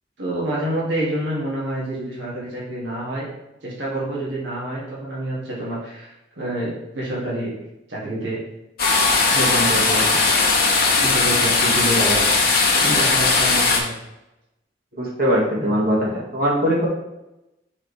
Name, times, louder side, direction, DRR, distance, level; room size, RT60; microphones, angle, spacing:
voice 1, 0.2-3.3 3.6-7.5 7.9-8.4 9.3-10.2 11.0-12.3 12.7-13.9 15.6-15.7, right 1 dB, 80° right, -6 dB, 2.3 m, -27 dB
sound 1, 8.8-13.8, left 3 dB, 55° left, 1.3 m, -18 dB
voice 2, 15.0-16.9, equal, 55° right, -4 dB, 1.9 m, -21 dB
5.5 x 5.3 x 3.3 m, 0.94 s
head